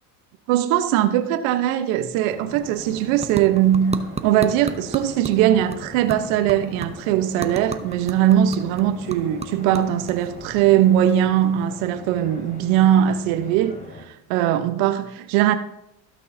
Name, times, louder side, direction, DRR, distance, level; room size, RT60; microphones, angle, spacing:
voice 1, 0.5-13.8 14.1-15.5, right 11 dB, 70° right, 1.0 m, -20 dB
sound 1, 2.2-11.7, right 4 dB, 15° right, 0.7 m, -36 dB
sound 2, 2.3-14.0, left 1 dB, 15° left, 2.9 m, -41 dB
17.0 x 6.5 x 2.7 m
hypercardioid pair, 80°, 49 cm